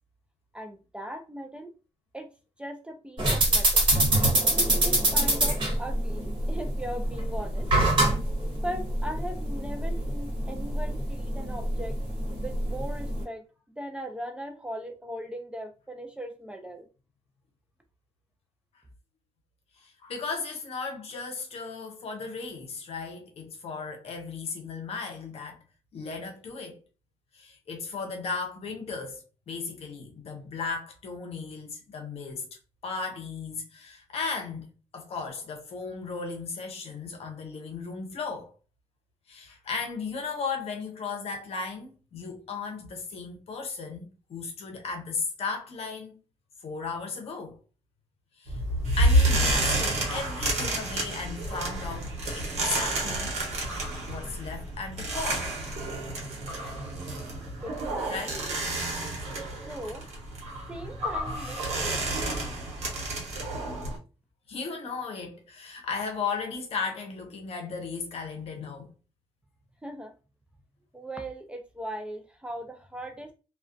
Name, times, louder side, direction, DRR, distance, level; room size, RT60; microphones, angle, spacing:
voice 1, 0.5-1.7 2.1-2.3 2.6-3.9 4.5-7.7 8.6-11.9 12.4-13.4 13.8-16.9 57.6-58.5 59.7-60.0 60.7-62.1 69.8-70.1 70.9-73.3, equal, 10° right, 0.3 m, -39 dB
sound 1, 3.2-13.2, right 1 dB, 45° right, 1.1 m, -25 dB
voice 2, 19.7-25.6 25.9-26.8 27.3-32.5 32.8-38.5 39.3-46.2 46.6-47.6 48.4-48.6 49.0-53.3 54.1-55.6 58.1-58.4 64.5-68.9, left 4 dB, 60° left, 0.7 m, -36 dB
sound 2, 48.5-64.0, right 1 dB, 80° right, 0.9 m, -29 dB
2.3 x 2.1 x 2.4 m
cardioid pair, 120°, 11 cm